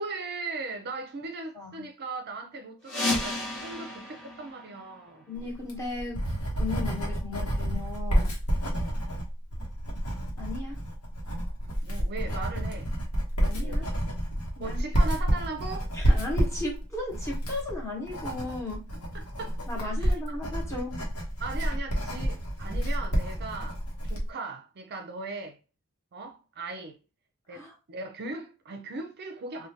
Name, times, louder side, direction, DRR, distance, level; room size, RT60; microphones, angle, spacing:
voice 1, 0.0-5.3 8.7-9.0 11.8-12.9 13.6-13.8 14.6-15.9 19.1-20.1 21.4-25.6 26.1-27.0 27.5-29.7, right 3 dB, 50° right, 0.4 m, -38 dB
sound 1, 2.8-5.5, left 2 dB, 55° left, 0.9 m, -33 dB
voice 2, 5.3-6.3 6.6-8.3 10.4-10.8 13.4-13.9 14.6-14.8 15.9-18.9 19.7-21.0 27.5-27.7, left 2 dB, 15° left, 0.9 m, -36 dB
Writing, 5.5-24.3, equal, 85° left, 0.9 m, -29 dB
3.2 x 2.2 x 2.7 m
head